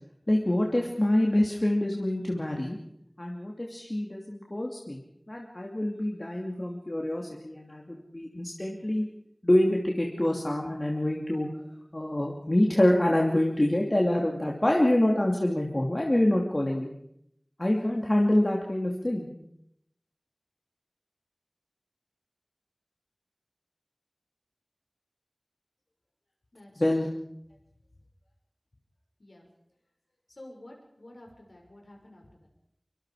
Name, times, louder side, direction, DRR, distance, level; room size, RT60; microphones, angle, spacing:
voice 1, 0.3-2.8 3.2-9.0 9.4-11.5 11.9-16.9 17.6-19.3 26.8-27.1, left 1 dB, 45° left, 0 dB, 2.9 m, -26 dB
voice 2, 26.5-27.2 29.2-29.5 30.3-32.5, left 1 dB, 85° left, 0 dB, 6.3 m, -50 dB
24.5 x 24.5 x 5.0 m, 0.77 s
wide cardioid pair, 40°, 0 cm